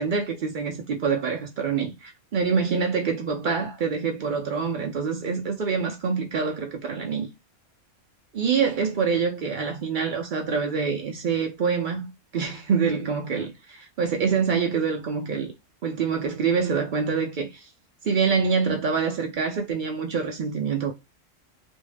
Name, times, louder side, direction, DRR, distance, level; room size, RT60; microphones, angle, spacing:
voice 1, 0.0-7.3 8.3-15.5 15.8-17.7 18.0-20.9, right 5 dB, 70° right, 0.4 m, -26 dB
2.6 x 2.1 x 3.2 m
omnidirectional pair, 1.3 m